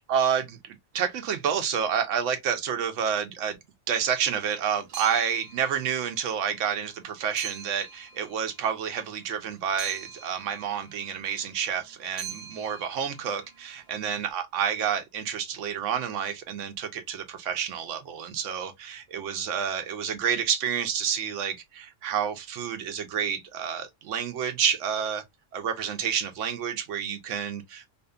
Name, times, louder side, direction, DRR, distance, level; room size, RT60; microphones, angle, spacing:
voice 1, 0.1-3.6 3.9-25.2 25.5-27.8, right 8 dB, 85° right, 1.0 m, -29 dB
sound 1, 4.3-14.3, right 8 dB, 65° right, 0.8 m, -44 dB
2.6 x 2.4 x 2.2 m
omnidirectional pair, 1.2 m